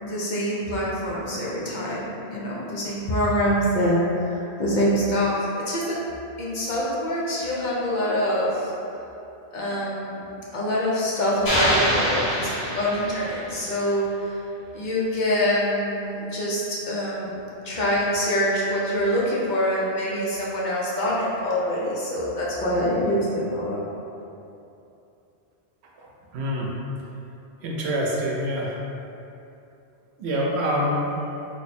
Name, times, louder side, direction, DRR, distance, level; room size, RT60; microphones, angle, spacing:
voice 1, 0.0-6.0 6.4-8.7 9.5-10.2 10.5-12.5 12.8-14.3 14.7-17.4 17.6-23.8, equal, 55° left, -6 dB, 0.7 m, -25 dB
sound 1, 11.5-13.6, equal, 75° left, 1.5 m, -25 dB
voice 2, 26.3-26.7 27.6-28.7 30.2-31.2, equal, 85° right, -2 dB, 0.9 m, -25 dB
3.1 x 2.1 x 4.1 m, 2.8 s
omnidirectional pair, 1.1 m